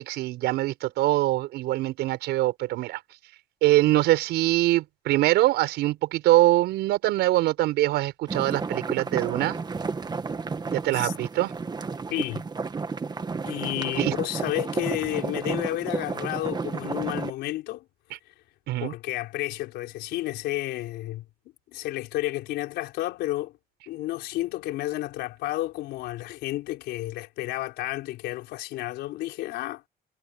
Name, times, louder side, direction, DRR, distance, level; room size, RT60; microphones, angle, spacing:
voice 1, 0.0-3.0 3.6-9.6 10.7-11.5 14.0-14.1 18.7-18.9, right 16 dB, 85° right, 6.4 m, -23 dB
sound 1, 8.3-17.3, right 4 dB, 25° right, 1.6 m, -32 dB
voice 2, 12.1-12.4 13.5-17.8 18.8-21.2 21.7-23.5 23.9-29.8, left 16 dB, 85° left, 4.2 m, -31 dB
cardioid pair, 110°, 17 cm